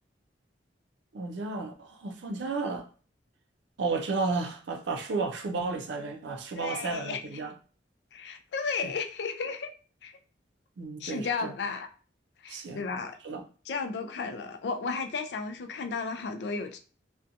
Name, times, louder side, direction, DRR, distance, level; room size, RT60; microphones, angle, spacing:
voice 1, 1.1-2.9 3.8-7.6 10.8-11.5 12.5-12.9 13.2-13.4, right 4 dB, 75° right, 0.4 m, -33 dB
voice 2, 6.6-7.2 8.1-9.7 10.0-10.1 11.0-11.9 12.4-13.2 13.7-16.8, left 4 dB, 70° left, 0.4 m, -33 dB
2.6 x 2.2 x 2.5 m
head